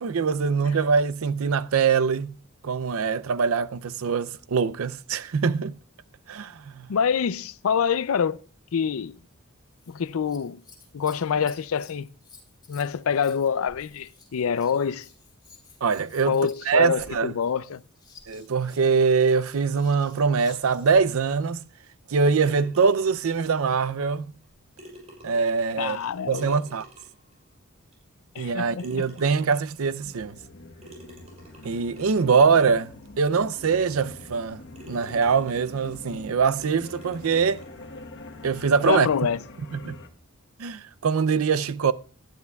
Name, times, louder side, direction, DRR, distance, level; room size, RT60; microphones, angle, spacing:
voice 1, 0.0-2.4 2.6-5.7 6.3-6.9 15.8-16.4 16.7-17.3 18.3-21.6 22.1-24.3 25.2-26.0 26.3-26.9 28.4-30.4 31.6-34.6 34.9-37.6 38.4-39.1 39.7-40.0 40.6-41.9, right 5 dB, 85° right, 0.5 m, -23 dB
voice 2, 6.9-8.4 8.7-9.2 9.9-10.6 10.9-12.1 12.7-15.1 16.2-17.8 25.8-26.6 28.3-29.0 38.9-39.4, left 7 dB, 80° left, 0.4 m, -26 dB
Scissors, 9.7-21.1 23.0-23.6 24.4-24.5, left 4 dB, 20° left, 3.2 m, -53 dB
sound 1, 22.4-23.4 24.4-24.5 24.8-27.3 27.9-28.0 28.8-29.7 30.8-32.3 33.0-33.1 33.6-33.7 34.3-34.5 34.7-36.1 36.6-37.7, right 1 dB, 35° right, 6.7 m, -49 dB
sound 2, 30.0-40.1, left 2 dB, 60° left, 1.2 m, -44 dB
19.0 x 12.0 x 2.3 m
head